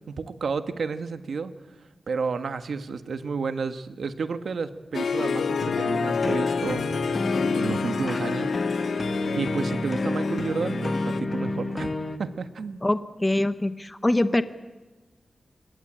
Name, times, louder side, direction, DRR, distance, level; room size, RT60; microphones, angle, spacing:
voice 1, 0.1-1.5 2.1-6.8 7.4-8.6 9.3-11.9 12.2-12.8, right 5 dB, 75° right, 10 dB, 1.4 m, -31 dB
Harp, 4.9-11.2, left 5 dB, 75° left, 0.8 m, -28 dB
sound 1, 5.6-12.2, left 2 dB, 30° left, 1.5 m, -30 dB
voice 2, 12.8-14.4, left 1 dB, 15° left, 11 dB, 0.9 m, -24 dB
26.0 x 21.0 x 8.8 m, 1.2 s
wide cardioid pair, 130°, 0 cm